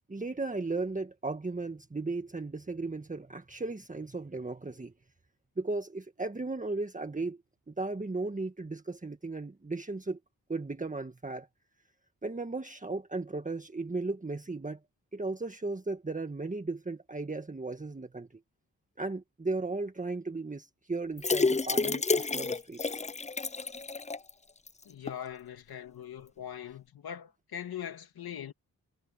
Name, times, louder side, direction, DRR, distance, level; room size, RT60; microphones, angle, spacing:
voice 1, 0.1-4.9 5.6-7.4 7.7-10.2 10.5-11.5 12.2-14.8 15.1-18.3 19.0-23.0, right 3 dB, 20° right, 1.7 m, -36 dB
sound 1, 21.2-24.3 24.7-24.8 25.1-25.2, left 4 dB, 20° left, 0.6 m, -29 dB
voice 2, 24.8-28.5, left 9 dB, 90° left, 2.8 m, -41 dB
cardioid pair, 75°, 36 cm